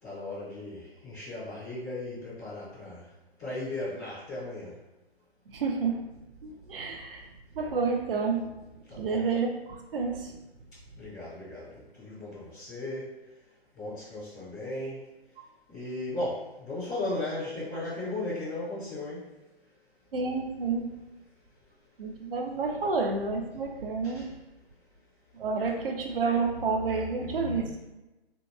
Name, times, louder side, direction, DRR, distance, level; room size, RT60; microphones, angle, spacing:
voice 1, 0.0-3.0 3.4-4.7 8.9-9.3 11.0-13.1 13.7-15.0 15.7-19.3 24.0-24.3, left 2 dB, 5° left, -15 dB, 0.4 m, -36 dB
voice 2, 5.5-6.1 6.4-7.3 7.6-8.6 9.0-10.4 20.1-20.9 22.0-24.3 25.3-27.8, right 4 dB, 60° right, 3 dB, 0.5 m, -30 dB
2.8 x 2.2 x 2.3 m, 0.99 s
figure-of-eight pair, 145°, 32 cm